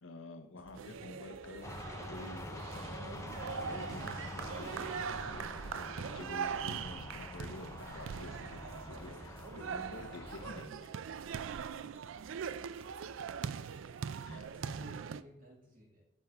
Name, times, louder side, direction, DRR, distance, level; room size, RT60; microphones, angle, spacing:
voice 1, 0.0-10.9 14.2-14.5, left 2 dB, 75° left, 7 dB, 0.9 m, -50 dB
sound 1, 0.6-15.0, equal, 10° right, 1.0 m, -61 dB
sound 2, 0.7-15.2, right 7 dB, 70° right, 0.3 m, -42 dB
voice 2, 0.8-1.2 7.1-7.2 7.8-7.9 10.1-10.7 12.3-12.9 14.5-16.0, left 1 dB, 40° right, -2 dB, 2.3 m, -57 dB
sound 3, 1.6-10.7, left 2 dB, 15° left, 0.4 m, -46 dB
8.5 x 8.0 x 3.6 m, 0.78 s
head